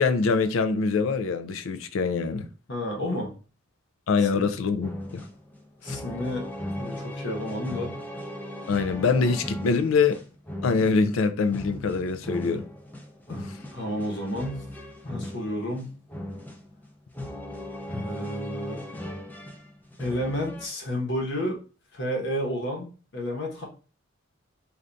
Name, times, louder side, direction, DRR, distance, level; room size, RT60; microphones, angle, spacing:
voice 1, 0.0-2.5 4.1-5.2 5.9-6.0 8.7-10.2 10.6-12.6, left 4 dB, 90° left, 0.4 m, -24 dB
voice 2, 2.7-3.3 4.2-4.5 5.8-6.5 6.8-8.0 13.3-14.7 15.0-15.8 17.9-18.8 20.0-21.6 21.9-23.6, equal, 60° left, 1.0 m, -31 dB
sound 1, 4.8-20.7, left 1 dB, 10° left, 0.5 m, -38 dB
2.5 x 2.5 x 3.3 m
head